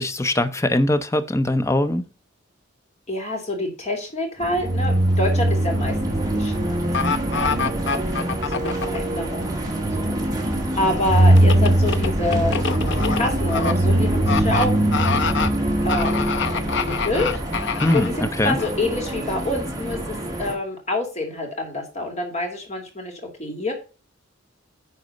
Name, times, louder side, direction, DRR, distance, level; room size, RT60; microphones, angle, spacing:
voice 1, 0.0-2.0 17.8-18.6, left 1 dB, 15° left, 0.6 m, -21 dB
voice 2, 3.1-8.0 8.5-12.6 12.8-14.8 15.8-17.3 17.6-23.7, left 1 dB, 30° left, 2.9 m, -28 dB
sound 1, 4.4-20.5, right 1 dB, 15° right, 1.9 m, -22 dB
sound 2, 6.9-9.0 11.4-13.7 14.3-14.7 14.9-15.5 15.9-18.1 18.6-18.7, left 6 dB, 55° left, 0.7 m, -25 dB
10.0 x 4.1 x 5.2 m
head